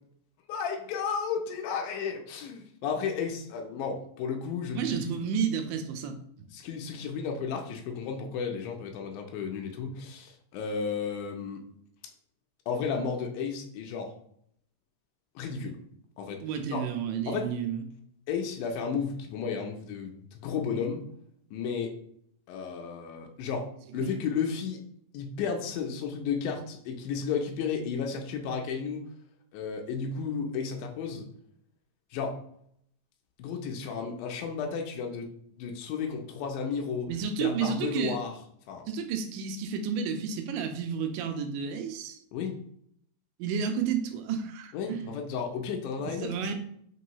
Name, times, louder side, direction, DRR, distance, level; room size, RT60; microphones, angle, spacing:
voice 1, 0.5-5.1 6.5-11.6 12.7-14.1 15.3-15.8 16.2-16.4 16.7-16.8 17.3-17.5 18.3-21.0 21.5-21.9 22.5-24.8 25.1-29.0 29.5-31.3 32.1-32.4 33.4-35.3 35.6-37.1 37.4-38.3 38.7-38.8 42.3-42.6 44.7-46.5, left 6 dB, 85° left, 2 dB, 1.7 m, -33 dB
voice 2, 4.8-6.5 16.4-17.8 24.0-24.2 37.1-38.2 38.9-42.2 43.4-45.1 46.2-46.5, right 7 dB, 80° right, 6 dB, 2.0 m, -31 dB
5.2 x 3.1 x 2.8 m, 0.68 s
omnidirectional pair, 4.1 m